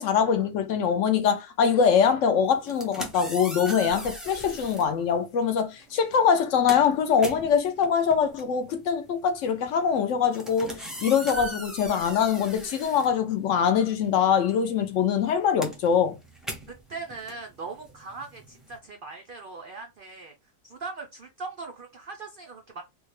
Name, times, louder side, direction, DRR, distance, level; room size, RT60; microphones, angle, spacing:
voice 1, 0.0-16.2, left 7 dB, 65° left, 0.8 m, -23 dB
sound 1, 2.5-4.9 5.8-6.0 6.3-13.8 14.1-18.8, right 1 dB, ahead, 0.5 m, -39 dB
voice 2, 16.7-20.3 20.6-22.8, right 4 dB, 80° right, 0.4 m, -40 dB
3.5 x 2.2 x 3.1 m
omnidirectional pair, 1.6 m